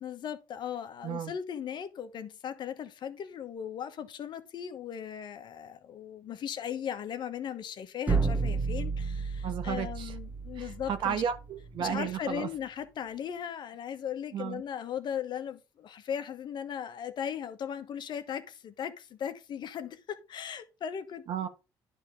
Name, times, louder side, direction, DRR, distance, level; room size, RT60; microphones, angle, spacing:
voice 1, 0.0-11.2 11.8-21.2, left 8 dB, 60° left, 1.1 m, -38 dB
sound 1, 8.1-11.9, right 4 dB, 15° right, 1.2 m, -32 dB
voice 2, 9.4-10.1 10.5-12.5 14.3-14.6 21.3-21.5, right 8 dB, 70° right, 1.3 m, -33 dB
10.5 x 3.6 x 5.0 m
supercardioid pair, 75°, 9 cm